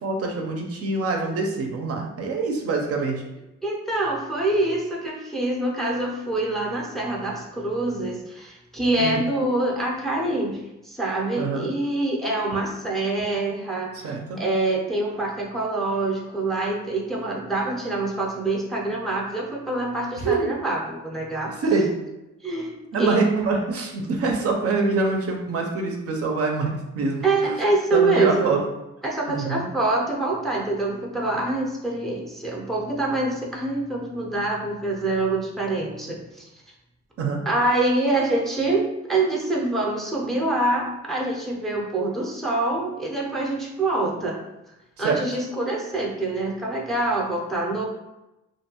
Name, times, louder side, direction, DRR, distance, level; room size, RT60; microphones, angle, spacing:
voice 1, 0.0-3.2 9.0-9.2 11.4-11.7 14.0-14.4 20.2-20.5 21.6-21.9 22.9-27.6 27.9-28.6 29.3-29.6 37.2-37.4 45.0-45.2, right 3 dB, 50° right, 1 dB, 0.5 m, -25 dB
voice 2, 3.6-10.6 10.8-21.5 22.4-23.2 27.2-28.6 29.0-36.4 37.5-44.4 45.0-47.8, right 2 dB, ahead, -2 dB, 0.5 m, -25 dB
2.5 x 2.2 x 2.8 m, 0.96 s
cardioid pair, 90°, 30 cm